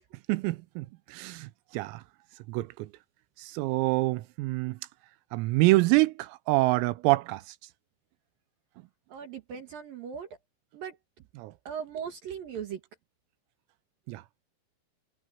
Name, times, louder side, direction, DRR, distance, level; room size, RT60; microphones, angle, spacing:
voice 1, 0.3-2.0 2.5-2.9 3.4-4.8 5.3-7.6 11.4-11.5 14.1-14.4, right 20 dB, 90° right, 3.6 m, -26 dB
voice 2, 9.1-10.3 10.7-11.0 11.7-12.8, right 7 dB, 60° right, 2.7 m, -38 dB
omnidirectional pair, 5.9 m